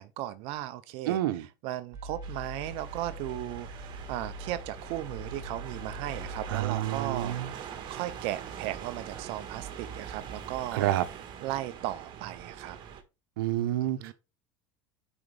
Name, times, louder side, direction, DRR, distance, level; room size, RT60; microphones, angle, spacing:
voice 1, 0.0-10.9 11.4-12.8 13.8-14.1, right 14 dB, 60° right, 0.7 m, -36 dB
voice 2, 1.1-1.4 6.5-7.5 10.7-11.0 13.4-14.1, right 13 dB, 85° right, 1.0 m, -28 dB
sound 1, 1.9-7.3, equal, 30° right, 3.1 m, -43 dB
sound 2, 2.2-13.0, right 8 dB, 45° right, 1.6 m, -43 dB
8.8 x 5.0 x 3.4 m
supercardioid pair, 110°, 11 cm